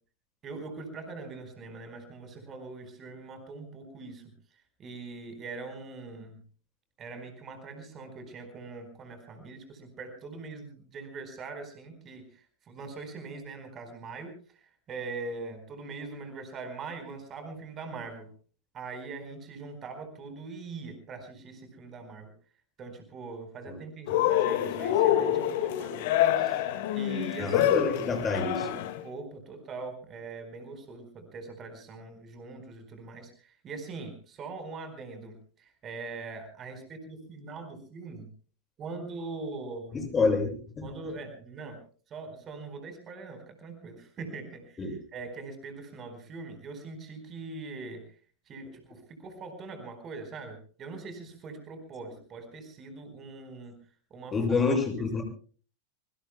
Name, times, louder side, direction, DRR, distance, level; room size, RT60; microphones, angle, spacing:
voice 1, 0.4-4.2 4.8-6.4 7.0-18.3 18.7-22.3 22.8-26.1 26.3-27.7 29.0-38.3 38.8-40.1 40.8-41.8 42.1-48.1 48.5-53.7 54.1-54.7, right 3 dB, 25° right, 7 dB, 4.4 m, -42 dB
Cheering, 24.1-29.0, left 12 dB, 50° left, 1.9 m, -26 dB
voice 2, 27.4-28.7 40.1-40.8 44.8-45.0 54.3-55.2, left 4 dB, 20° left, 4 dB, 7.1 m, -27 dB
26.0 x 24.5 x 2.2 m, 0.41 s
figure-of-eight pair, 90°, 0 cm